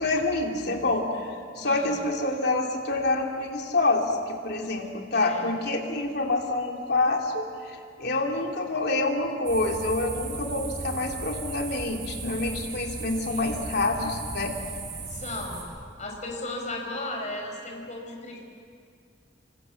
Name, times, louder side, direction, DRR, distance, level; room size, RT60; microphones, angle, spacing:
voice 1, 0.0-14.5, left 2 dB, 60° left, 1 dB, 3.1 m, -27 dB
voice 2, 1.5-1.9 5.1-5.5 13.3-13.6 15.1-15.6 16.0-18.4, left 2 dB, 40° left, 1 dB, 4.9 m, -35 dB
sound 1, 9.5-15.6, right 3 dB, 70° right, 7.0 m, -36 dB
28.0 x 24.5 x 7.3 m, 2.2 s
head